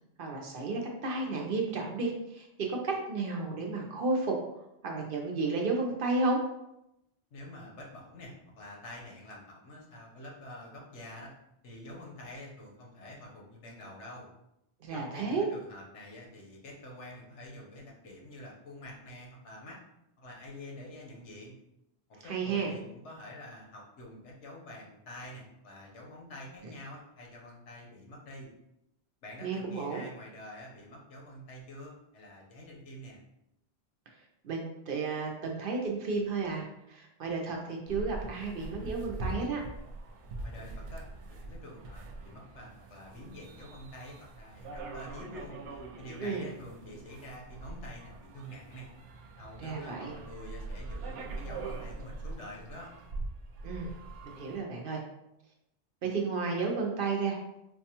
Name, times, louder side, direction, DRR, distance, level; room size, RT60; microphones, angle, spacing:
voice 1, 0.2-4.4 4.8-6.4 14.8-15.5 22.2-22.7 29.4-30.1 34.4-39.6 46.2-46.5 49.6-50.2 53.6-53.9 54.2-55.0 56.0-57.4, right 3 dB, 60° right, 0 dB, 0.7 m, -32 dB
voice 2, 7.3-11.3 11.6-14.3 14.9-19.8 20.2-21.5 22.1-28.5 29.2-33.2 40.4-48.9 49.4-52.9, left 1 dB, 80° left, -1 dB, 1.1 m, -47 dB
sound 1, 37.9-54.6, right 2 dB, 85° right, 0.9 m, -43 dB
4.6 x 2.2 x 2.8 m, 0.84 s
omnidirectional pair, 1.2 m